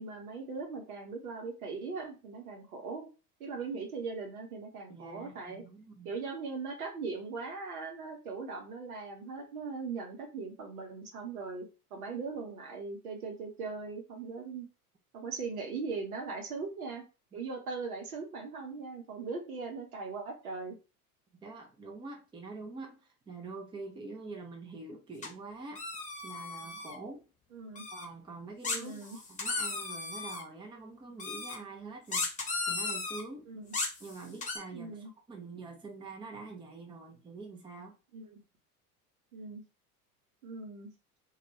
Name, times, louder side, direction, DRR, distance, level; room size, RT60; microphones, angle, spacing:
voice 1, 0.0-3.1 3.4-5.6 6.0-11.7 11.9-14.7 15.1-17.0 17.3-20.8 27.5-27.9 28.7-29.2 33.5-33.7 34.7-35.1 38.1-38.4 39.3-39.6 40.4-40.9, right 4 dB, 70° right, 2 dB, 1.0 m, -39 dB
voice 2, 4.9-6.1 21.4-25.8 26.2-27.2 27.9-33.5 34.0-38.0, right 3 dB, 10° right, 2 dB, 0.6 m, -45 dB
sound 1, 25.2-25.3 25.7-27.0 27.8-28.0 28.6-30.4 31.2-31.6 32.1-33.2 33.7-34.6, left 3 dB, 15° left, 0.9 m, -35 dB
2.4 x 2.3 x 3.0 m, 0.31 s
figure-of-eight pair, 75°, 45 cm